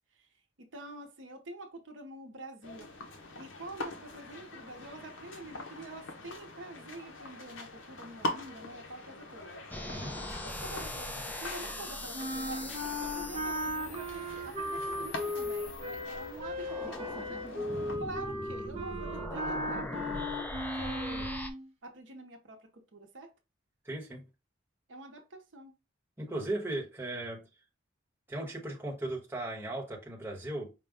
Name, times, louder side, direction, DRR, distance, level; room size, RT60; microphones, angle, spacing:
voice 1, 0.6-2.9 3.4-9.5 10.4-21.3 21.8-23.3 24.9-25.7, right 2 dB, 65° right, 0.8 m, -46 dB
sound 1, 2.6-18.0, left 1 dB, 70° left, 0.9 m, -44 dB
sound 2, 9.7-21.5, left 1 dB, 10° left, 0.4 m, -41 dB
sound 3, 12.1-21.7, left 1 dB, 30° right, 0.8 m, -37 dB
voice 2, 23.8-24.2 26.2-27.4 28.3-30.7, right 1 dB, 10° right, 1.0 m, -37 dB
5.1 x 2.2 x 3.5 m
head